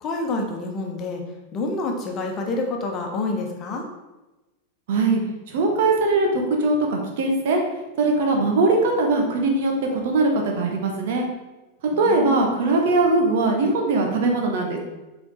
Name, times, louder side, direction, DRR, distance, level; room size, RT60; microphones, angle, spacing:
voice 1, 0.0-1.2 1.5-3.9 11.9-12.6, left 2 dB, 30° left, 2 dB, 1.2 m, -28 dB
voice 2, 4.9-5.2 5.5-7.6 8.0-11.2 12.0-14.8, right 3 dB, 55° right, 2 dB, 1.3 m, -21 dB
7.3 x 4.4 x 4.0 m, 1.1 s
figure-of-eight pair, 90°, 0 cm